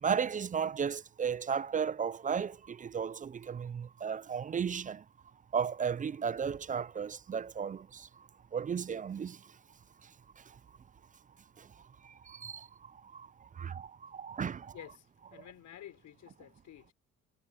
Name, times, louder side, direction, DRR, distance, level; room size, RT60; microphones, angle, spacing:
voice 1, 0.0-5.0 5.5-9.5 10.0-10.1 10.4-10.6 11.6-11.7 12.0-14.7, right 7 dB, 25° right, 0.4 m, -35 dB
voice 2, 14.7-16.9, left 11 dB, 75° left, 5.2 m, -51 dB
cardioid pair, 90°, 30 cm